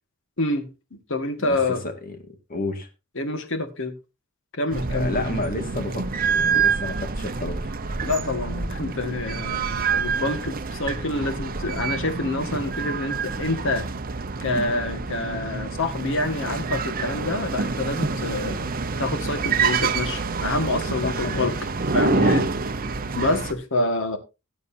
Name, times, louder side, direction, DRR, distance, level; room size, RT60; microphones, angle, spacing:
voice 1, 0.4-1.8 3.2-3.9 4.6-5.3 8.0-13.9 14.4-18.6 19.0-21.6 21.9-22.4 23.2-24.2, left 2 dB, 60° left, 1.8 m, -27 dB
voice 2, 1.8-2.2 2.5-2.9 4.9-7.6 21.0-21.6 22.1-22.5, left 2 dB, 45° left, 2.0 m, -30 dB
sound 1, 4.7-23.5, right 4 dB, 45° right, 0.9 m, -27 dB
17.5 x 8.2 x 2.7 m
head